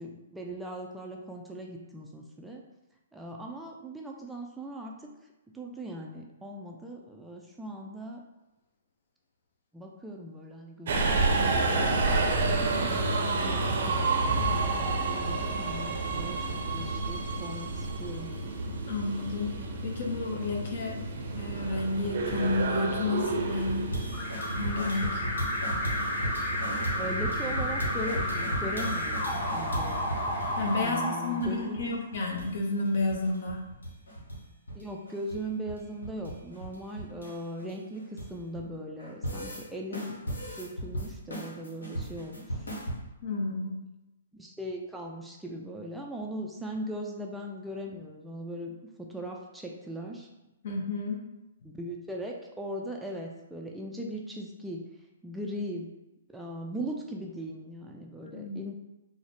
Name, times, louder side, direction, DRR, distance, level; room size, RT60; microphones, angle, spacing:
voice 1, 0.0-2.6 3.1-5.1 5.5-8.2 9.7-11.1 11.7-12.2 13.4-18.3 27.0-30.0 30.8-32.0 34.7-38.0 38.3-42.7 44.3-50.3 51.6-54.8 55.2-55.9 56.3-58.8, right 1 dB, 5° right, -1 dB, 0.3 m, -39 dB
Subway metro underground, 10.9-30.8, right 3 dB, 60° right, 0.5 m, -31 dB
voice 2, 12.7-13.4 18.9-19.5 19.8-21.0 21.3-23.9 24.5-25.2 30.6-33.6 43.2-43.8 50.6-51.2 58.2-58.6, left 3 dB, 55° left, 1 dB, 0.7 m, -31 dB
sound 1, 23.6-30.5 30.8-30.9 31.2-31.9 32.1-32.5 32.7-34.4 34.7-38.6 39.0-39.6 39.9-43.0, right 1 dB, 90° left, 1.0 m, -37 dB
Alarm, 24.1-32.0, left 1 dB, 25° left, 1.0 m, -32 dB
3.7 x 2.1 x 3.3 m, 0.95 s
hypercardioid pair, 130°, 0 cm